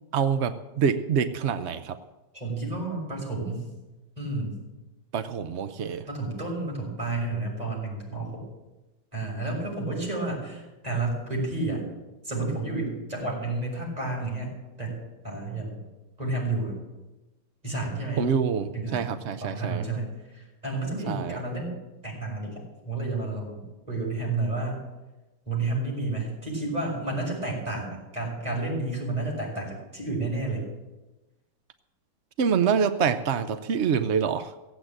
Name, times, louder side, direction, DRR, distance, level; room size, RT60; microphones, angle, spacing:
voice 1, 0.1-2.0 5.1-6.0 18.2-19.8 21.1-21.4 32.4-34.5, right 7 dB, 80° right, 10 dB, 0.6 m, -26 dB
voice 2, 2.3-3.6 4.2-4.6 6.1-8.4 9.1-11.8 12.2-14.5 14.8-15.8 16.2-16.8 17.6-18.3 18.7-19.1 19.4-21.8 22.0-24.8 25.5-30.6, right 2 dB, 20° right, -2 dB, 6.2 m, -31 dB
17.0 x 8.1 x 8.9 m, 1.1 s
omnidirectional pair, 2.1 m